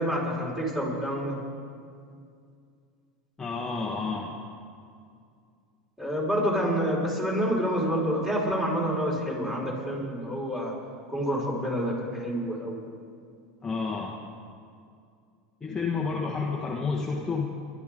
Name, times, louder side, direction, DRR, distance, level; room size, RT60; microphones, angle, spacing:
voice 1, 0.0-1.4 6.0-10.8 11.1-12.8, equal, 15° right, -4 dB, 5.2 m, -28 dB
voice 2, 3.4-4.4 13.6-14.2 15.6-17.6, left 4 dB, 15° left, -2 dB, 1.5 m, -30 dB
28.5 x 12.5 x 3.8 m, 2.3 s
supercardioid pair, 130°, 3 cm